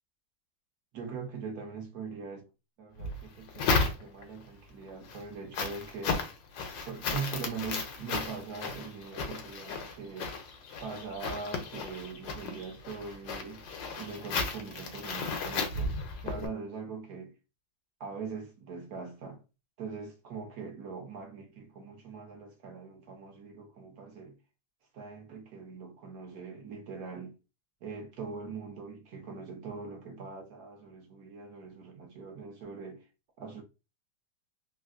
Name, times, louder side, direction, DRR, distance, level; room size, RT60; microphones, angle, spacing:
voice 1, 0.9-2.4 2.8-6.3 6.8-10.3 10.8-13.6 14.0-16.0 16.2-17.3 18.0-19.4 19.8-24.4 24.9-27.4 27.8-33.0 33.4-33.6, right 5 dB, 65° right, 1.0 m, -42 dB
sound 1, 3.0-4.4 4.9-16.5, left 4 dB, 75° left, 1.3 m, -34 dB
3.2 x 2.5 x 2.4 m
omnidirectional pair, 2.0 m